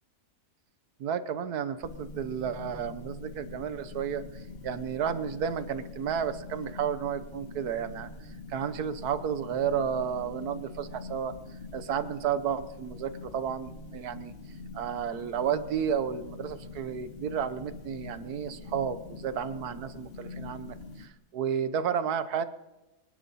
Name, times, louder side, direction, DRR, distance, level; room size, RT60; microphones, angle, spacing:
voice 1, 1.0-11.3 11.7-14.3 14.7-22.4, right 8 dB, 85° right, 12 dB, 1.5 m, -32 dB
sound 1, 1.8-21.1, left 3 dB, 40° left, 1.9 m, -44 dB
25.5 x 11.5 x 4.2 m, 1.0 s
omnidirectional pair, 1.6 m